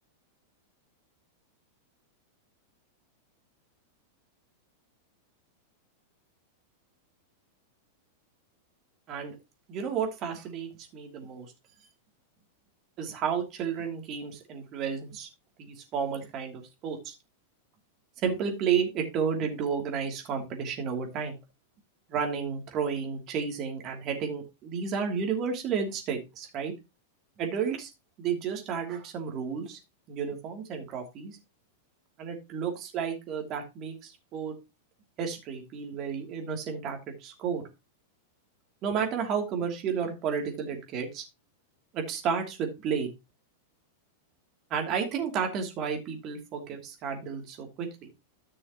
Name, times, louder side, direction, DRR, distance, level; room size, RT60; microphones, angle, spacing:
voice 1, 9.7-11.5 13.0-15.3 15.6-17.1 18.2-21.4 22.1-26.7 27.4-27.9 28.2-29.8 30.1-31.4 32.2-34.5 35.2-37.6 38.8-41.2 41.9-43.1 44.7-48.1, right 6 dB, 40° right, 3 dB, 2.8 m, -32 dB
14.0 x 6.2 x 3.0 m, 0.24 s
figure-of-eight pair, 95°, 0 cm